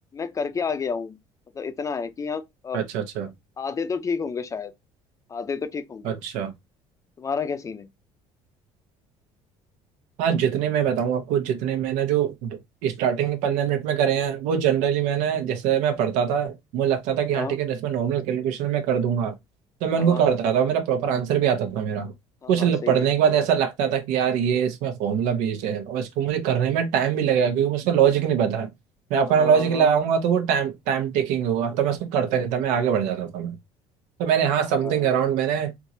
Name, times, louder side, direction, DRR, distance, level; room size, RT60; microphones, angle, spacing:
voice 1, 0.1-1.2 1.5-2.8 3.6-4.7 5.3-6.1 7.2-7.9 17.3-17.6 19.9-20.3 22.4-23.1 29.2-29.9 34.7-35.1, left 5 dB, 25° left, 0.6 m, -30 dB
voice 2, 2.7-3.3 6.0-6.5 10.2-19.3 19.8-22.1 22.5-28.7 29.1-33.5 34.2-35.7, right 8 dB, 90° right, 1.0 m, -23 dB
3.6 x 2.9 x 2.7 m
cardioid pair, 130°, 12 cm